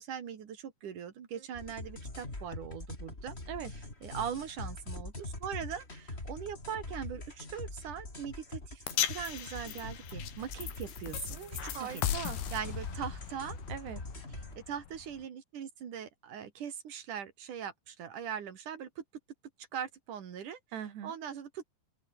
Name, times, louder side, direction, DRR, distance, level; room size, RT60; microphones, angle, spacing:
voice 1, 0.0-3.4 4.0-12.0 12.5-13.6 14.6-19.0 19.7-20.6 21.0-21.6, right 8 dB, 50° right, 3.7 m, -41 dB
voice 2, 1.3-1.7 3.5-3.7 11.3-12.4 13.7-14.0 20.7-21.2, right 9 dB, 75° right, 4.7 m, -41 dB
sound 1, 1.5-14.6, left 2 dB, 15° left, 4.4 m, -43 dB
sound 2, 8.9-15.2, left 10 dB, 65° left, 3.8 m, -38 dB
open air
omnidirectional pair, 4.8 m